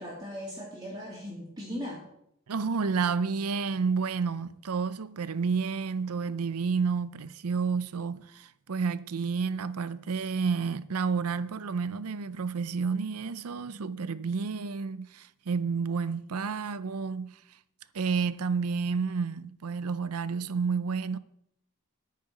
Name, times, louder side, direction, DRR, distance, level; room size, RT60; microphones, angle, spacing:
voice 1, 0.0-2.0, equal, 20° right, 2.6 m, -38 dB
voice 2, 2.5-17.6 17.9-21.2, right 5 dB, 85° right, 0.6 m, -30 dB
10.0 x 6.7 x 9.2 m
head